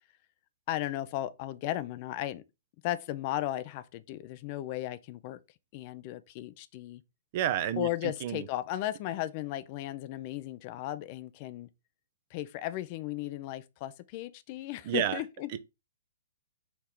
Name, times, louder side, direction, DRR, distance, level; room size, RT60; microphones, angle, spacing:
voice 1, 0.7-2.4 2.8-5.4 5.7-7.0 7.8-11.7 12.3-15.6, left 14 dB, 40° left, 0.5 m, -35 dB
voice 2, 7.3-8.4 14.9-15.2, right 11 dB, 45° right, 0.6 m, -30 dB
4.7 x 3.0 x 3.7 m
hypercardioid pair, 125°, 0 cm